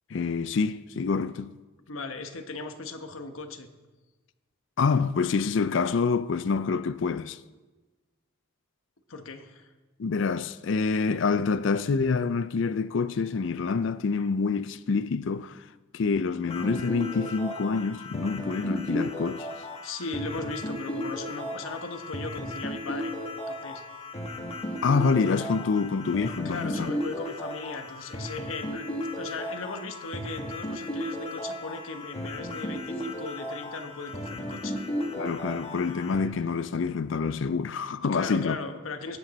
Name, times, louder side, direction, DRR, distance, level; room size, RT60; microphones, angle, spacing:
voice 1, 0.1-1.6 4.8-7.4 10.0-15.6 15.9-19.5 24.8-26.9 35.2-38.6, left 4 dB, 60° left, 0.4 m, -27 dB
voice 2, 1.9-3.7 9.1-9.7 19.8-23.2 23.5-23.8 26.4-34.8 38.1-39.2, left 3 dB, 75° left, 1.1 m, -38 dB
sound 1, 16.5-36.2, left 1 dB, 30° left, 1.5 m, -35 dB
17.5 x 9.4 x 4.1 m
head